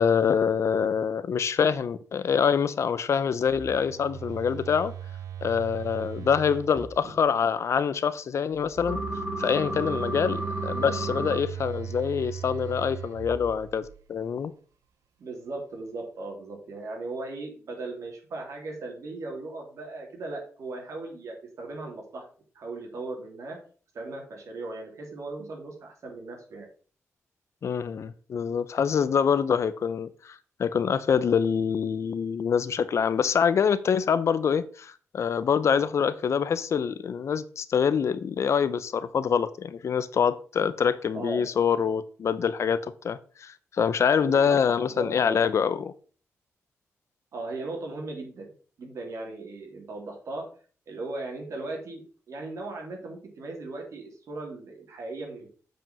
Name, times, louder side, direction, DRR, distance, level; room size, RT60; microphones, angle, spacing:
voice 1, 0.0-4.9 5.4-9.0 9.4-14.5 27.6-45.9, left 7 dB, 60° left, 0.6 m, -25 dB
Telephone, 3.3-7.4 8.5-14.2, right 9 dB, 85° right, 0.8 m, -39 dB
sound 1, 8.9-11.4, right 1 dB, 25° right, 4.5 m, -32 dB
voice 2, 15.2-22.2 22.5-23.6 23.9-26.7 41.1-41.4 44.2-45.4 47.3-48.5 48.8-50.5 50.9-55.5, right 2 dB, 70° right, 3.2 m, -37 dB
7.7 x 5.2 x 5.5 m
cardioid pair, 110°, 5 cm